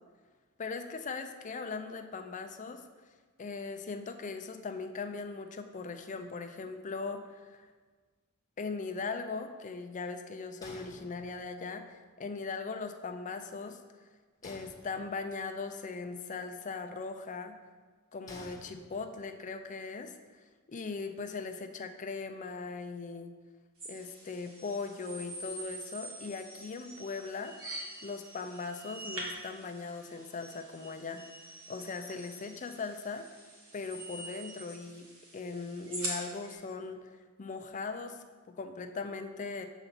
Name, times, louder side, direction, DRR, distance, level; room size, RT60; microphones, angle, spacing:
voice 1, 0.6-2.8 3.4-7.7 8.6-13.8 14.4-17.5 18.1-20.1 20.7-23.3 23.8-27.5 28.0-33.3 33.7-35.1 35.3-39.7, left 4 dB, 35° left, 7 dB, 0.5 m, -39 dB
sound 1, 10.6-11.7 14.4-15.5 18.3-19.4, left 2 dB, 15° left, 1.0 m, -51 dB
sound 2, 23.8-36.6, right 1 dB, 85° right, 1.8 m, -45 dB
6.8 x 4.1 x 5.8 m, 1.4 s
head